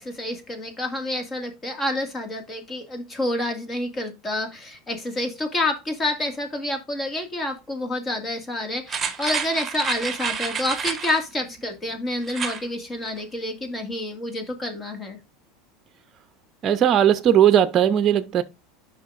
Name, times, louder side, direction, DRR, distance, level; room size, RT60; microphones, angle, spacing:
voice 1, 0.0-15.2, left 1 dB, 25° left, 2.0 m, -28 dB
sound 1, 8.9-11.2 12.2-12.6 13.0-13.1, right 6 dB, 20° right, 1.4 m, -29 dB
voice 2, 16.6-18.4, right 10 dB, 40° right, 0.6 m, -18 dB
9.4 x 5.7 x 2.5 m
supercardioid pair, 110°, 0 cm